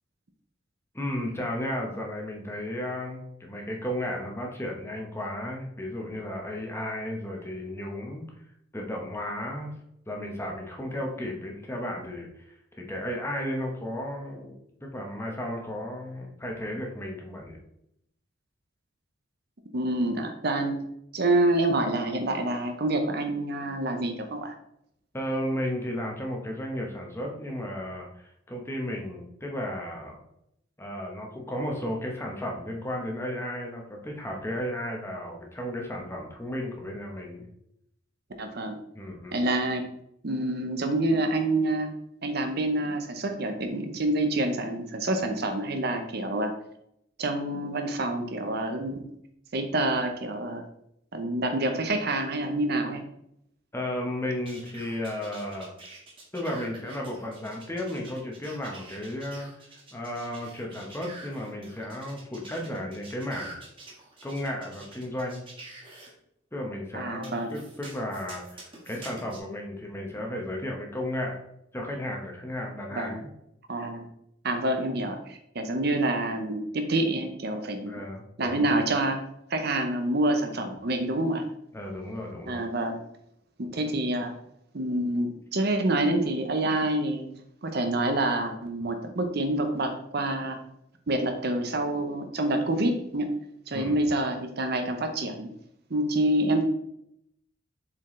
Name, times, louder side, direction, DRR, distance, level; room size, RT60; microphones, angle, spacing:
voice 1, 0.9-8.3 8.7-9.7 10.1-12.5 12.9-17.6 25.1-30.2 30.8-37.5 38.9-39.4 53.7-55.7 56.3-59.5 59.9-63.5 64.2-65.5 66.5-71.4 71.7-73.3 77.8-78.7 81.7-82.7 93.7-94.0, left 1 dB, 15° left, 0 dB, 1.0 m, -34 dB
voice 2, 19.7-20.8 21.1-24.5 38.4-38.8 39.3-39.8 40.2-41.9 42.2-46.5 47.2-49.0 49.5-50.6 51.1-53.1 66.9-67.5 72.9-73.2 73.7-74.0 74.4-77.9 78.4-79.2 79.5-81.4 82.5-83.0 83.6-84.3 84.7-87.3 87.6-90.6 91.1-93.3 93.7-95.5 95.9-96.7, right 1 dB, 55° right, 6 dB, 0.8 m, -27 dB
sound 1, 54.5-66.1 67.2-69.4, right 2 dB, 25° right, 1.6 m, -47 dB
7.2 x 4.5 x 3.2 m, 0.76 s
head